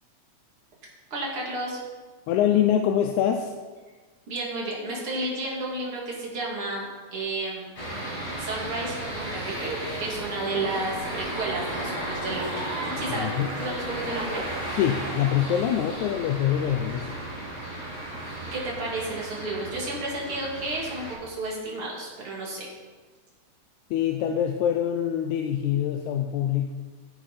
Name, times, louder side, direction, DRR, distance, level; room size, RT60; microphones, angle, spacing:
voice 1, 1.1-1.8 4.3-7.7 8.4-12.6 13.0-13.3 13.6-14.4 18.4-22.7, right 2 dB, 45° right, -4 dB, 3.4 m, -32 dB
voice 2, 2.3-3.5 13.1-13.5 14.8-17.1 23.9-26.7, left 10 dB, 90° left, 5 dB, 2.1 m, -24 dB
sound 1, 7.8-21.1, right 1 dB, 50° left, 5.7 m, -34 dB
14.5 x 9.1 x 4.2 m, 1.4 s
omnidirectional pair, 3.4 m